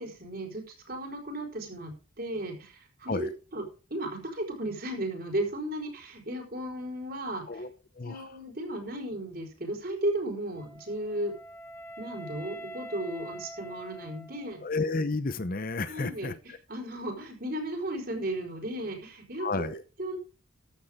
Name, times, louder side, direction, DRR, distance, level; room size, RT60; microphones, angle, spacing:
voice 1, 0.0-3.6 3.9-7.6 8.0-11.3 12.0-14.6 15.9-16.4 16.7-19.7 20.0-20.2, right 1 dB, 45° right, 3 dB, 4.7 m, -35 dB
voice 2, 8.0-8.3 14.6-16.6 19.4-19.8, left 3 dB, 40° left, 13 dB, 0.8 m, -32 dB
Wind instrument woodwind instrument, 10.5-14.7, equal, 10° left, 2.0 m, -45 dB
14.5 x 10.0 x 3.7 m, 0.34 s
head